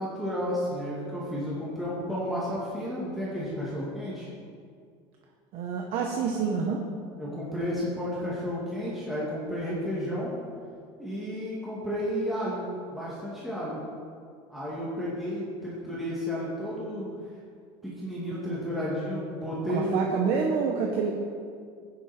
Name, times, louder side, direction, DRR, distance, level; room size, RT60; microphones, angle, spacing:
voice 1, 0.0-4.3 7.2-10.3 11.0-13.8 14.5-17.1 17.8-20.1, equal, ahead, -9 dB, 2.3 m, -32 dB
voice 2, 5.5-6.8 19.7-21.1, right 5 dB, 50° right, 1 dB, 1.2 m, -27 dB
17.0 x 10.0 x 4.4 m, 2.2 s
cardioid pair, 170°, 12 cm